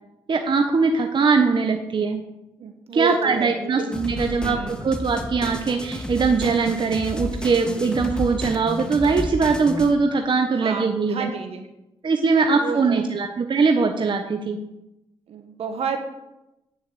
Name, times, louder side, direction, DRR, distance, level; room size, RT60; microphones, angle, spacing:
voice 1, 0.3-2.2 2.9-11.3 12.0-14.6, right 4 dB, 45° right, 4 dB, 1.2 m, -21 dB
voice 2, 2.6-3.9 4.4-4.8 10.6-11.7 12.5-13.1 15.3-16.0, right 6 dB, 70° right, 5 dB, 1.6 m, -30 dB
sound 1, 3.9-9.9, left 1 dB, 10° left, 1.8 m, -32 dB
9.4 x 7.8 x 8.2 m, 0.94 s
cardioid pair, 65°, 11 cm